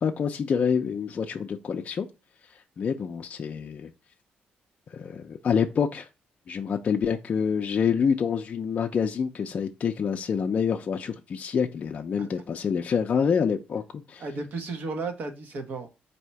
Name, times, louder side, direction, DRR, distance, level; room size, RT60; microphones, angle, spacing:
voice 1, 0.0-2.1 2.8-3.9 4.9-6.1 6.5-14.2, left 6 dB, 45° left, 0.4 m, -27 dB
voice 2, 14.2-15.9, right 3 dB, 60° right, 1.0 m, -34 dB
4.2 x 2.7 x 4.5 m
cardioid pair, 110°, 3 cm